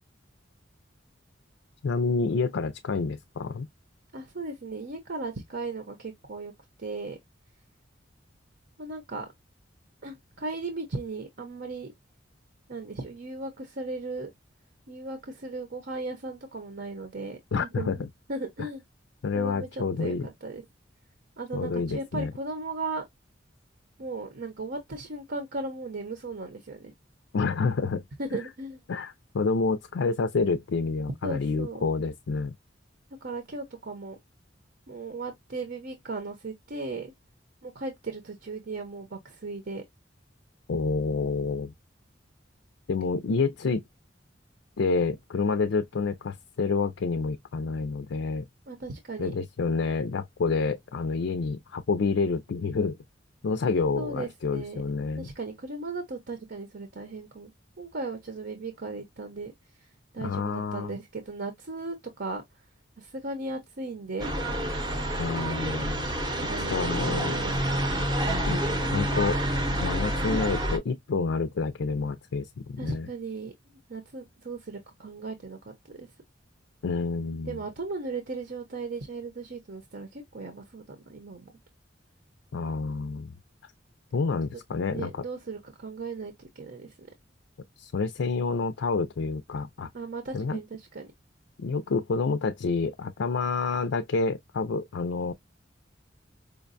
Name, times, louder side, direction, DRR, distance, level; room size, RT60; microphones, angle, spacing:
voice 1, 1.8-3.7 17.5-18.0 19.2-20.3 21.5-22.3 27.3-28.0 28.9-32.5 40.7-41.7 42.9-43.8 44.8-48.4 49.2-53.0 53.4-55.3 60.2-60.9 65.2-66.1 66.7-67.3 68.5-68.6 68.9-69.4 69.8-73.1 76.8-77.6 82.5-83.3 84.1-85.2 87.8-89.9 90.3-90.6 91.6-95.3, left 4 dB, 70° left, 0.4 m, -28 dB
voice 2, 4.1-6.5 6.8-7.2 8.8-9.3 10.0-11.9 12.7-14.3 14.9-18.0 18.3-18.8 19.3-20.6 21.4-23.0 24.0-26.9 28.2-28.8 31.2-31.9 33.2-34.2 34.9-37.1 37.6-39.8 48.7-49.3 54.0-54.8 55.2-57.5 57.8-59.5 60.1-62.4 63.0-64.3 66.4-67.8 72.8-73.5 73.9-76.1 77.5-81.5 84.9-87.1 89.9-91.1, right 3 dB, 60° right, 0.8 m, -37 dB
sound 1, 64.2-70.8, right 1 dB, 25° right, 0.7 m, -28 dB
5.1 x 2.2 x 2.5 m
head